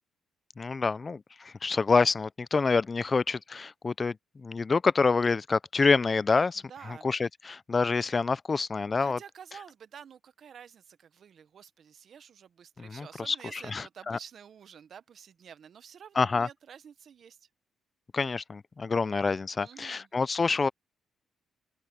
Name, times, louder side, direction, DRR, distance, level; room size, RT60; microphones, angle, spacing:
voice 1, 0.6-4.2 4.4-6.6 7.0-9.2 12.8-14.2 16.2-16.5 18.1-20.7, left 4 dB, 30° left, 0.5 m, -27 dB
voice 2, 6.7-7.1 9.0-17.5 19.6-20.1, right 8 dB, 55° right, 1.1 m, -50 dB
open air
cardioid pair, 90°, 0 cm